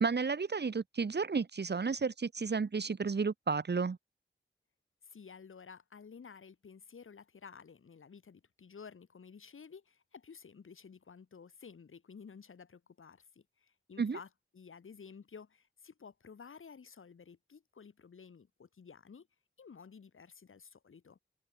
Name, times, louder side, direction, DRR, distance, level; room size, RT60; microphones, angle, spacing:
voice 1, 0.0-4.0 14.0-14.2, right 5 dB, 55° right, 1.4 m, -32 dB
voice 2, 5.0-14.3 14.5-19.3 19.6-21.2, left 6 dB, 85° left, 4.1 m, -53 dB
cardioid pair, 55°, 20 cm